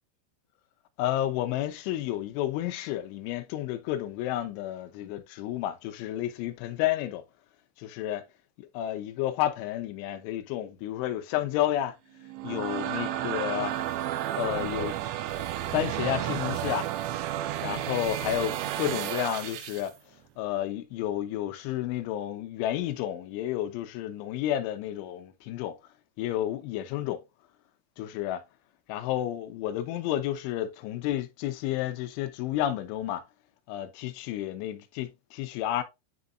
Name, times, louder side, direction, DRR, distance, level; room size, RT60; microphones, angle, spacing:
voice 1, 1.0-7.2 7.8-8.2 8.6-12.0 12.4-13.8 14.4-15.0 15.7-16.9 17.6-19.9 20.4-25.8 26.2-27.2 28.0-28.4 28.9-33.2 33.7-35.8, left 12 dB, 80° left, 3.2 m, -31 dB
sound 1, 12.2-19.9, right 12 dB, 80° right, 2.8 m, -32 dB
10.5 x 4.1 x 2.4 m
omnidirectional pair, 5.6 m